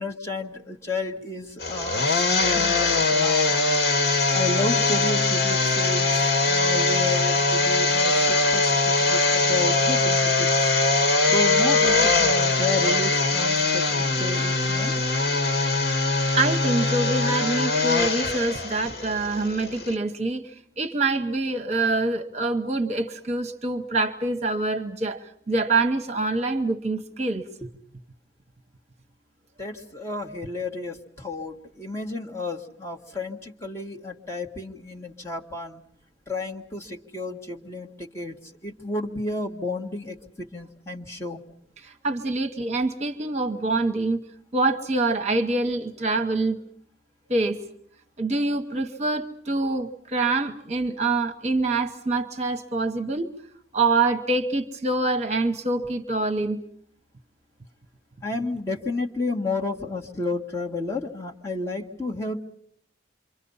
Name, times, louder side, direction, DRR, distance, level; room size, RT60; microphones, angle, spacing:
voice 1, 0.0-3.6 4.3-10.5 11.3-14.9 27.6-27.7 29.6-35.8 36.3-41.4 58.2-62.4, left 2 dB, 15° left, -1 dB, 1.8 m, -32 dB
sound 1, 1.6-19.9, left 3 dB, 60° left, 2.0 m, -22 dB
voice 2, 16.3-27.4 41.8-44.2 44.5-46.6 47.3-47.6 48.2-53.3 53.7-56.6, right 2 dB, 35° right, 8 dB, 1.1 m, -25 dB
28.0 x 25.0 x 5.6 m, 0.67 s
head